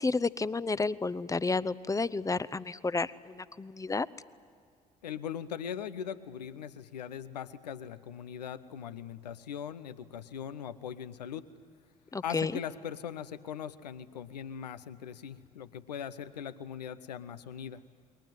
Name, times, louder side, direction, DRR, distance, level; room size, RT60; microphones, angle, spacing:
voice 1, 0.0-4.1 12.1-12.6, left 3 dB, 15° left, 17 dB, 0.7 m, -31 dB
voice 2, 5.0-11.4 12.2-17.8, left 8 dB, 80° left, 14 dB, 0.8 m, -40 dB
29.0 x 21.5 x 9.2 m, 2.2 s
figure-of-eight pair, 50°, 21 cm